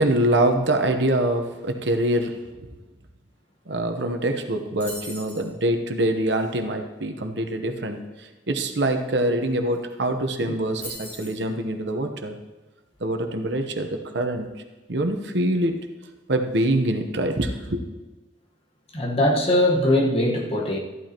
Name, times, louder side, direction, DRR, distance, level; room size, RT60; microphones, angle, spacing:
voice 1, 0.0-2.4 3.7-12.3 13.0-14.5 14.9-15.8 16.3-17.8, right 1 dB, 75° right, 6 dB, 1.0 m, -24 dB
sound 1, 4.8-5.5 9.4-9.5 9.7-10.1 10.8-11.4, left 1 dB, 10° left, 4.2 m, -38 dB
voice 2, 18.9-20.8, left 1 dB, 30° left, -1 dB, 1.4 m, -21 dB
14.0 x 12.0 x 3.0 m, 1.2 s
head